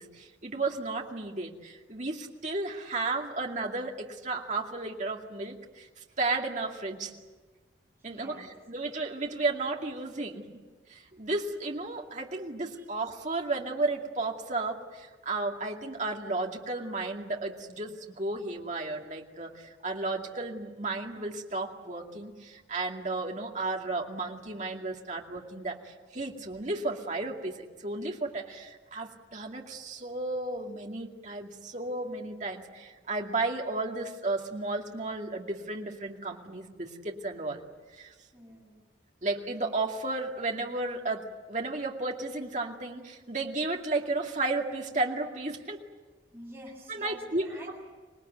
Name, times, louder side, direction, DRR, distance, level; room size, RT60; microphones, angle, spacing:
voice 1, 0.0-5.9 6.2-7.1 8.0-10.5 10.9-37.6 37.9-38.1 39.2-45.8 46.9-47.7, right 2 dB, 40° right, 1 dB, 2.4 m, -33 dB
voice 2, 8.1-8.5 12.7-12.9 38.3-38.8 46.3-47.7, right 1 dB, 10° right, -4 dB, 7.9 m, -47 dB
26.0 x 20.0 x 9.4 m, 1.3 s
head